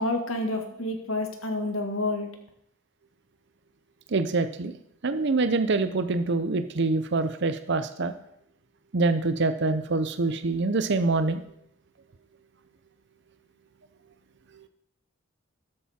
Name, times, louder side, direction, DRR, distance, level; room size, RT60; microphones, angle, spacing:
voice 1, 0.0-2.4, left 2 dB, 75° left, 5 dB, 1.8 m, -29 dB
voice 2, 4.1-4.7 5.0-8.1 8.9-11.4, right 3 dB, 55° right, 10 dB, 0.6 m, -25 dB
13.0 x 8.6 x 4.3 m, 0.75 s
head